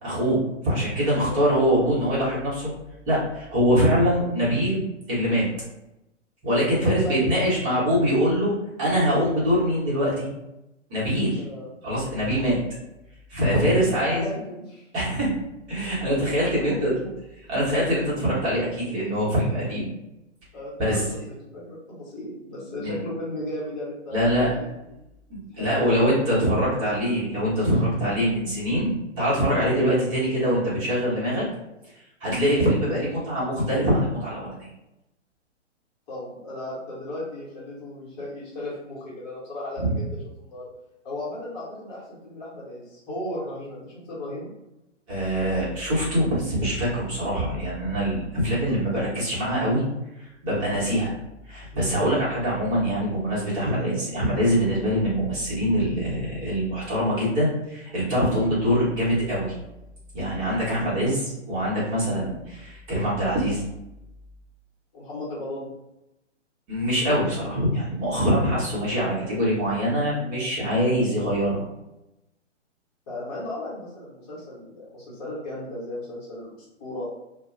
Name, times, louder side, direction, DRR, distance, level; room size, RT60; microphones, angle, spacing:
voice 1, 0.0-2.7 3.1-4.8 5.1-5.5 6.4-8.5 8.8-10.3 10.9-11.4 11.8-12.6 13.3-14.2 14.9-15.3 15.7-16.9 17.5-19.9 20.8-21.0 22.8-23.0 24.1-24.5 25.3-31.5 32.2-34.7 39.8-39.9 45.1-49.9 50.2-51.1 51.5-59.5 60.1-63.6 66.7-71.6, equal, 25° right, -8 dB, 1.0 m, -23 dB
voice 2, 6.8-7.3 11.3-11.8 13.5-14.9 16.2-17.1 20.5-24.7 25.5-26.0 29.7-29.9 32.4-32.5 36.1-40.0 40.4-40.7 41.0-44.5 48.6-48.8 50.8-51.0 62.2-62.3 64.9-65.7 70.8-71.0 73.1-77.1, left 1 dB, 30° left, -7 dB, 1.0 m, -35 dB
2.2 x 2.2 x 3.1 m, 0.92 s
figure-of-eight pair, 130°, 37 cm